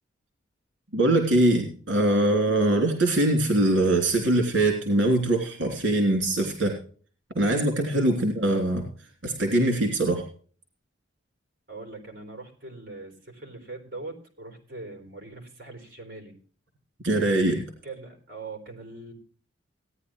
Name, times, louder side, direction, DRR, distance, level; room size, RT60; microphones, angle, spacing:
voice 1, 0.9-6.8 7.3-8.9 9.2-10.3 17.0-17.6, right 1 dB, 70° right, 1 dB, 3.2 m, -22 dB
voice 2, 11.7-16.4 17.8-19.1, right 3 dB, 50° right, 3 dB, 3.9 m, -41 dB
18.0 x 10.0 x 3.1 m, 0.42 s
head